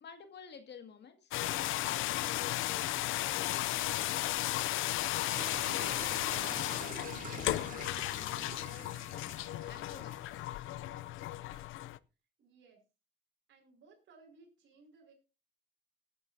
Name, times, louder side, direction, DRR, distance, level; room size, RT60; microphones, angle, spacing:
voice 1, 0.0-1.3 1.9-3.0 3.4-4.5 5.1-7.8 8.1-8.9 9.6-10.5, left 7 dB, 60° left, 7 dB, 2.0 m, -52 dB
sound 1, 1.3-12.0, left 16 dB, 85° left, 0.5 m, -35 dB
sound 2, 5.3-10.7, right 8 dB, 45° right, 0.6 m, -48 dB
voice 2, 11.3-11.7 12.4-12.8 13.5-15.1, right 4 dB, 70° right, -2 dB, 5.3 m, -62 dB
19.5 x 10.5 x 2.7 m, 0.29 s
cardioid pair, 90°, 20 cm